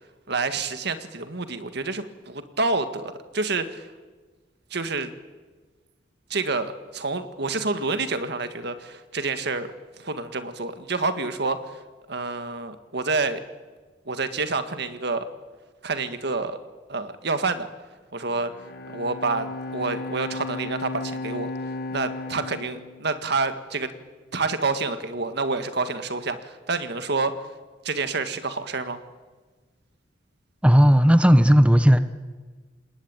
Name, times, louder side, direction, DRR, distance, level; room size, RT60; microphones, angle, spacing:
voice 1, 0.3-3.9 4.7-5.1 6.3-9.7 10.0-11.8 12.1-13.4 14.1-15.3 15.8-16.6 16.9-17.7 18.1-18.5 18.9-21.5 21.9-23.9 24.3-27.3 27.8-29.0, right 3 dB, 65° right, 9 dB, 1.8 m, -28 dB
Bowed string instrument, 18.4-23.8, left 2 dB, 60° left, 1.8 m, -35 dB
voice 2, 30.6-32.0, equal, 5° right, 10 dB, 0.9 m, -15 dB
27.5 x 20.5 x 9.0 m, 1.4 s
head